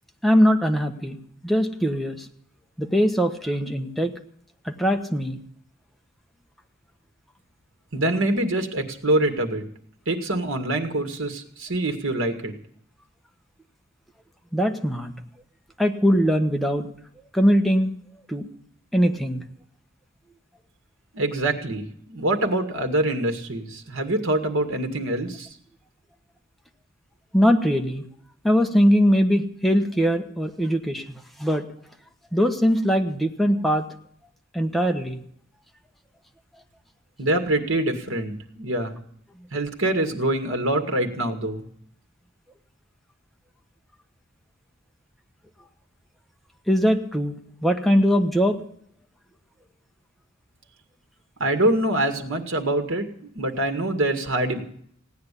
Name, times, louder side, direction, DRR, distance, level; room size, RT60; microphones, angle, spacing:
voice 1, 0.2-2.3 2.8-4.1 4.6-5.4 14.5-15.1 15.8-16.9 17.3-17.9 18.3-18.5 18.9-19.4 27.3-28.1 28.4-31.7 32.3-33.8 34.5-35.2 46.7-47.3 47.6-48.6, equal, ahead, 4 dB, 1.2 m, -21 dB
voice 2, 7.9-9.6 10.1-12.5 21.1-25.5 37.2-39.0 39.5-41.7 51.4-54.6, right 1 dB, 75° right, 6 dB, 2.1 m, -25 dB
17.0 x 9.6 x 8.4 m, 0.65 s
head